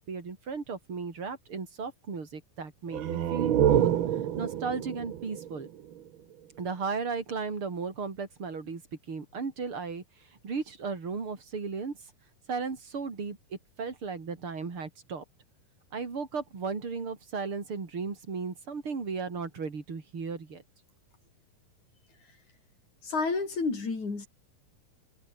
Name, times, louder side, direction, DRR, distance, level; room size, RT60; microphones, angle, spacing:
voice 1, 0.0-3.9 4.4-5.7 6.6-8.8 9.1-10.0 10.4-12.0 12.5-15.2 15.9-20.6, right 5 dB, 40° right, 4.4 m, -35 dB
sound 1, 2.9-6.4, right 10 dB, 90° right, 1.1 m, -28 dB
voice 2, 23.0-24.3, left 4 dB, 55° left, 7.4 m, -30 dB
omnidirectional pair, 4.0 m